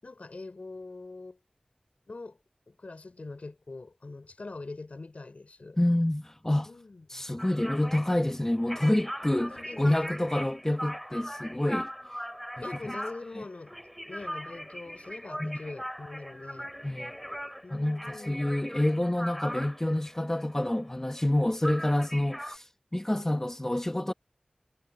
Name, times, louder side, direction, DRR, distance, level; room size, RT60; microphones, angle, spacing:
voice 1, 0.0-1.4 2.1-2.4 2.7-5.8 6.6-7.3 9.3-10.3 12.6-13.8 14.1-16.7 17.6-18.4 23.1-23.8, left 3 dB, 70° left, 6.8 m, -43 dB
voice 2, 5.8-6.7 7.1-9.5 9.8-11.9 12.6-12.7 15.4-15.6 16.8-17.1 17.7-24.1, left 1 dB, 20° left, 1.6 m, -28 dB
sound 1, 7.4-21.4 21.6-22.6, equal, ahead, 7.6 m, -40 dB
wide cardioid pair, 60°, 2 cm